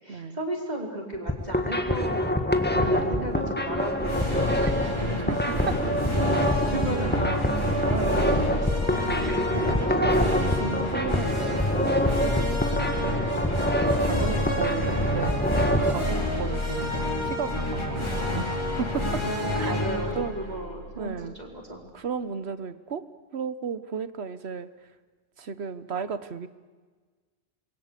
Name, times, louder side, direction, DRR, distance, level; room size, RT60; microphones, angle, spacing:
voice 1, 0.0-5.1 5.8-5.9 6.7-7.4 7.8-9.6 9.9-10.5 13.9-14.6 19.2-21.8, right 1 dB, 40° right, 0 dB, 4.8 m, -35 dB
sound 1, 1.1-15.9, left 1 dB, 10° left, 1.7 m, -26 dB
voice 2, 2.7-3.5 4.6-5.8 6.2-7.3 8.3-8.7 9.5-13.7 14.0-18.5 18.8-19.2 19.5-19.7 20.1-20.3 21.0-21.3 21.9-23.1 23.3-24.7 25.4-26.5, right 6 dB, 75° right, 13 dB, 1.4 m, -34 dB
sound 2, 4.0-21.4, left 1 dB, 25° left, 4.0 m, -29 dB
27.5 x 22.0 x 8.3 m, 1.4 s
omnidirectional pair, 1.1 m